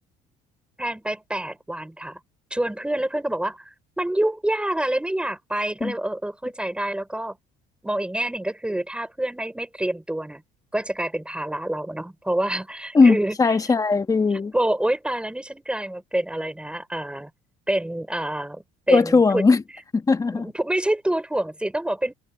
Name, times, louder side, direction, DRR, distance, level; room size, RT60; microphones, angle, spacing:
voice 1, 0.8-2.2 2.5-7.4 7.8-10.4 10.7-13.6 14.3-17.3 17.7-19.5 20.3-22.1, right 1 dB, 5° right, 5.4 m, -27 dB
voice 2, 12.9-14.5 18.9-19.6 19.9-20.5, left 4 dB, 20° left, 1.5 m, -18 dB
supercardioid pair, 95°, 16 cm